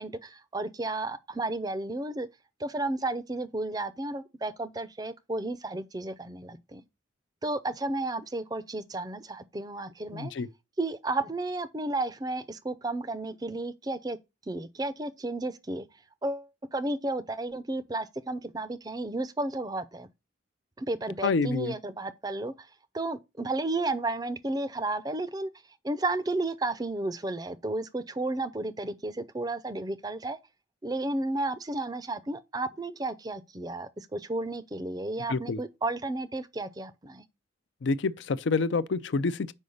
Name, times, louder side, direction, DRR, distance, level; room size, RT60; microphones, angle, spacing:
voice 1, 0.0-2.3 2.6-6.8 7.4-10.3 10.8-14.2 14.5-15.9 16.2-20.1 20.8-22.7 22.9-25.5 25.8-30.4 30.8-37.2, right 2 dB, 20° right, 0.5 m, -32 dB
voice 2, 10.1-10.5 21.2-21.7 35.3-35.6 37.8-39.5, left 4 dB, 65° left, 0.4 m, -27 dB
5.4 x 5.0 x 6.4 m
head